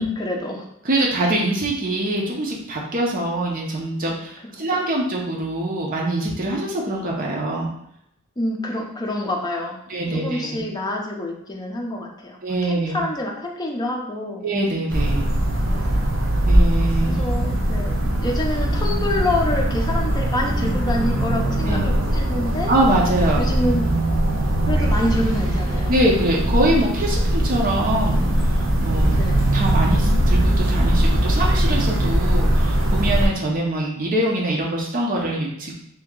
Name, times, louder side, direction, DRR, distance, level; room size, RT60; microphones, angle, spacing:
voice 1, 0.0-0.7 4.4-4.5 8.4-14.4 15.6-16.2 17.0-22.7 23.4-23.9 24.6-26.0 29.1-29.4, left 1 dB, 20° left, 0 dB, 0.6 m, -27 dB
voice 2, 0.8-7.7 9.9-10.6 12.4-13.0 14.4-15.3 16.5-17.2 21.7-21.9 22.7-23.4 25.9-28.2 28.8-29.2 29.5-35.7, right 1 dB, 45° right, -2 dB, 0.7 m, -23 dB
sound 1, 14.9-33.3, right 1 dB, 75° right, 0.8 m, -20 dB
2.9 x 2.8 x 3.6 m, 0.75 s
head